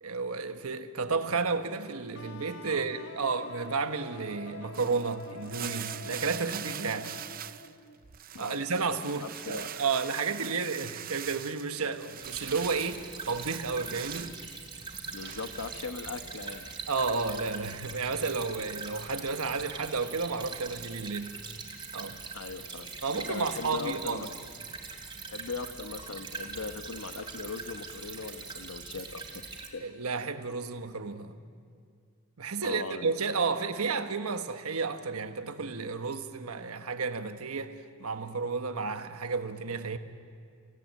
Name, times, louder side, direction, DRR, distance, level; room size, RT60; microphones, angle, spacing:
voice 1, 0.0-7.1 8.4-14.4 16.9-21.4 21.9-22.2 23.0-24.3 29.8-31.3 32.4-37.7 38.0-40.0, right 4 dB, 90° right, 1.3 m, -32 dB
sound 1, 2.1-8.0, left 3 dB, 50° left, 1.2 m, -46 dB
sound 2, 4.7-7.7 8.0-14.4 14.8-15.8, right 11 dB, 40° right, 0.5 m, -43 dB
voice 2, 8.3-8.9 9.2-9.7 15.1-16.7 22.3-24.3 25.3-29.8 32.6-33.1, left 4 dB, 85° left, 1.2 m, -39 dB
Stream / Trickle dribble, 12.2-29.7, right 4 dB, 20° right, 2.9 m, -42 dB
28.0 x 17.0 x 9.2 m
head